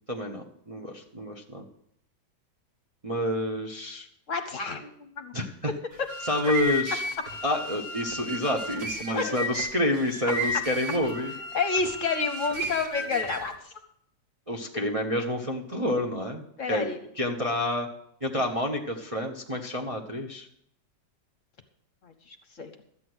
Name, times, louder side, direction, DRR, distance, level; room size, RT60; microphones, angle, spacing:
voice 1, 0.1-1.6 3.0-4.1 5.3-5.7 6.2-7.0 7.4-11.3 14.5-16.9 17.2-17.9 18.2-20.5, left 1 dB, 25° right, 1 dB, 0.8 m, -29 dB
voice 2, 4.3-5.3 9.1-9.3 11.5-13.7 16.6-17.0 22.0-22.7, left 5 dB, 50° left, 7 dB, 1.2 m, -30 dB
sound 1, 5.9-13.6, equal, 60° right, 1.8 m, -34 dB
13.0 x 8.5 x 6.2 m, 0.72 s
omnidirectional pair, 1.9 m